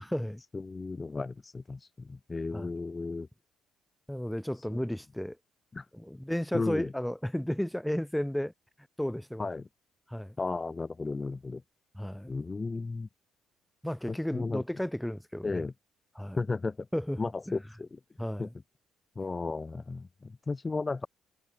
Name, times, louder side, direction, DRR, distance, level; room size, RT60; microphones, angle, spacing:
voice 1, 0.5-3.3 4.7-4.8 5.7-5.9 6.5-6.9 9.4-9.7 10.4-11.6 12.3-13.1 14.1-14.6 15.4-15.7 16.4-16.9 17.2-18.0 18.4-18.5 19.1-21.1, left 3 dB, 20° left, 1.2 m, -34 dB
voice 2, 4.1-5.4 5.9-8.5 9.0-9.5 10.1-10.4 11.9-12.3 13.8-15.6 16.1-16.4 16.9-17.2 18.2-18.5, equal, 5° left, 1.3 m, -33 dB
cardioid pair, 130°, 0 cm